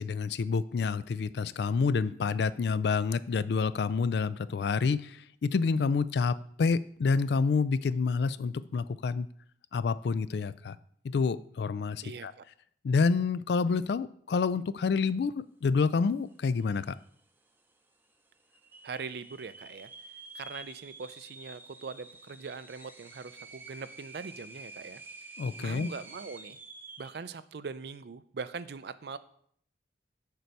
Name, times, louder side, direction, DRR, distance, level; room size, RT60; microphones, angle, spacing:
voice 1, 0.0-9.3 9.7-10.8 11.0-12.3 12.8-17.0 25.4-25.9, left 5 dB, 65° left, 16 dB, 0.3 m, -28 dB
voice 2, 12.0-12.4 18.8-19.9 20.3-25.0 25.6-26.6 27.0-29.2, right 5 dB, 60° right, 14 dB, 0.4 m, -41 dB
sound 1, 16.3-16.4 16.6-17.2 17.7-17.8 18.5-27.2, right 2 dB, 10° right, 0.6 m, -49 dB
6.8 x 4.5 x 6.6 m, 0.62 s
head